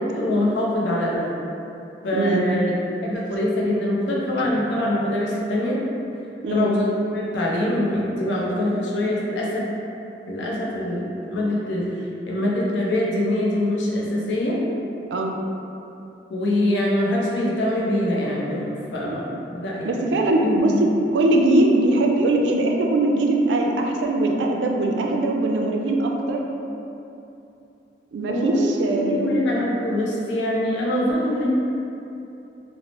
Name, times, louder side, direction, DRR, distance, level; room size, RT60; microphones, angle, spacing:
voice 1, 0.1-1.3 2.0-2.8 3.0-5.8 6.5-9.6 10.3-11.9 12.3-14.6 16.3-20.1 20.4-20.5 28.3-31.5, left 1 dB, 90° left, -4 dB, 0.5 m, -24 dB
voice 2, 2.1-2.5 6.4-6.7 15.1-15.4 19.8-26.4 28.1-29.2, right 2 dB, 85° right, 1 dB, 0.3 m, -21 dB
2.8 x 2.0 x 3.0 m, 2.8 s
head